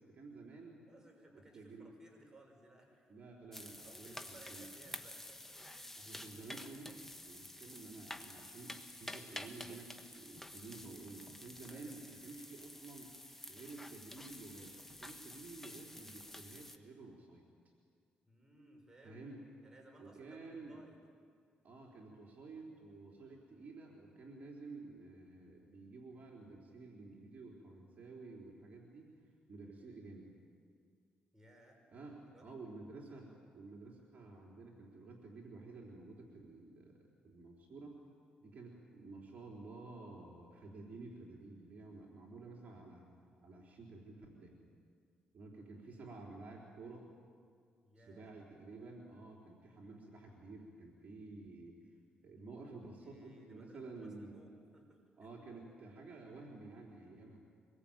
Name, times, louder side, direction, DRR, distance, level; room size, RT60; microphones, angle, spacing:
voice 1, 0.0-0.8 1.5-1.9 3.1-4.7 6.0-13.1 13.5-17.4 19.0-19.4 20.0-20.8 21.6-29.2 29.5-30.3 31.9-38.0 38.4-43.1 43.4-44.6 45.3-47.1 48.0-51.8 52.2-54.4 55.2-57.4, right 3 dB, 45° right, -1 dB, 4.2 m, -52 dB
voice 2, 0.9-3.1 3.8-6.0 11.7-11.9 18.2-19.2 19.6-21.0 31.3-31.8 32.3-32.6 47.8-48.3 53.0-55.3, right 1 dB, 15° right, 1 dB, 6.0 m, -61 dB
sound 1, 3.5-16.8, left 1 dB, 10° left, 1.6 m, -50 dB
25.0 x 22.0 x 9.1 m, 2.1 s
cardioid pair, 90°, 3 cm